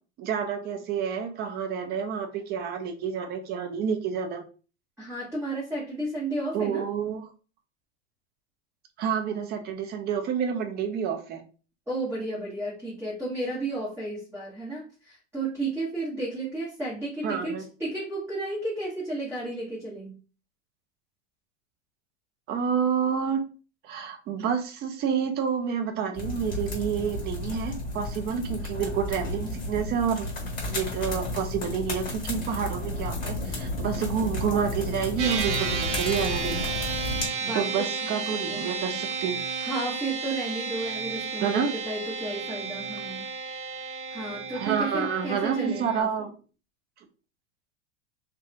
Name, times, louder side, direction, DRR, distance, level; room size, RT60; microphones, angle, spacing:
voice 1, 0.2-4.4 6.5-7.3 9.0-11.4 17.2-17.6 22.5-23.4 23.8-30.3 30.7-36.6 37.5-39.4 41.4-41.7 44.5-46.3, right 7 dB, 30° right, 7 dB, 0.5 m, -29 dB
voice 2, 5.0-6.9 11.9-17.5 17.8-20.2 37.4-37.9 38.3-39.0 39.6-43.3 44.1-46.1, right 2 dB, 5° right, -8 dB, 1.1 m, -33 dB
sound 1, 26.1-37.3, left 2 dB, 25° left, 1.5 m, -32 dB
sound 2, 35.2-46.0, right 5 dB, 75° right, 0.8 m, -32 dB
2.6 x 2.3 x 2.5 m, 0.36 s
hypercardioid pair, 110°, 35 cm